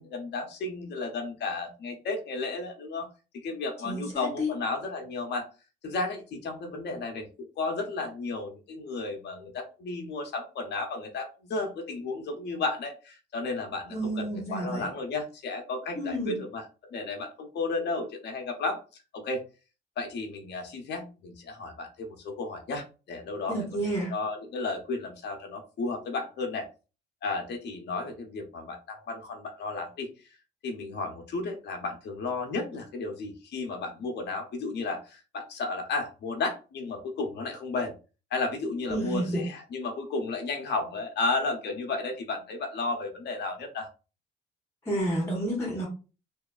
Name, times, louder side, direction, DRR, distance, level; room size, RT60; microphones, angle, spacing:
voice 1, 0.0-3.1 3.3-5.5 5.8-7.3 7.6-16.6 16.9-18.8 19.1-19.4 20.0-23.6 24.1-26.7 27.2-30.1 30.6-37.9 38.3-43.9, left 3 dB, 60° left, 3 dB, 0.7 m, -33 dB
voice 2, 3.8-4.5 13.9-14.9 16.0-16.4 23.5-24.1 38.9-39.5 44.8-45.9, right 1 dB, 15° left, -1 dB, 1.0 m, -30 dB
2.7 x 2.4 x 2.3 m, 0.33 s
cardioid pair, 90°, 20 cm